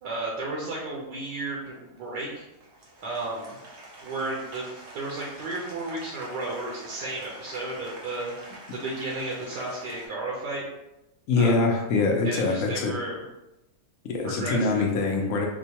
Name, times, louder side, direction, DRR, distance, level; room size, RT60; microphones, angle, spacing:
voice 1, 0.0-2.5 3.0-3.6 4.0-10.6 11.4-11.6 12.2-13.2 14.2-14.8, right 2 dB, 80° right, -4 dB, 1.3 m, -33 dB
Applause, 0.9-10.1, right 1 dB, 50° right, 0.9 m, -46 dB
voice 2, 11.3-12.9 14.0-15.5, left 3 dB, 65° left, 1 dB, 0.9 m, -24 dB
4.4 x 2.2 x 2.8 m, 0.95 s
omnidirectional pair, 1.8 m